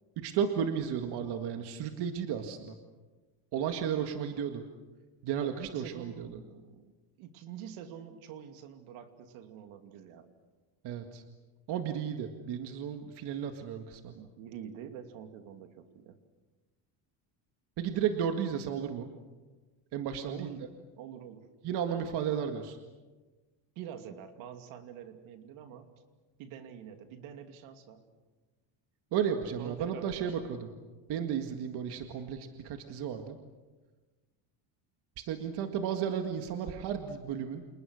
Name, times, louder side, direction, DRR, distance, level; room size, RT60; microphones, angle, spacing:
voice 1, 0.2-2.8 3.5-4.6 5.2-6.4 10.8-11.2 11.7-14.2 17.8-19.1 19.9-20.6 21.6-22.8 29.1-30.7 31.1-33.4 35.2-37.6, right 8 dB, 50° right, 5 dB, 2.0 m, -33 dB
voice 2, 5.4-6.9 7.2-10.3 14.1-16.2 20.3-20.6 21.0-21.5 21.8-22.1 23.7-25.9 26.4-28.0 29.6-30.5, right 9 dB, 75° right, 7 dB, 2.9 m, -46 dB
30.0 x 28.5 x 6.5 m, 1.3 s
cardioid pair, 165°, 49 cm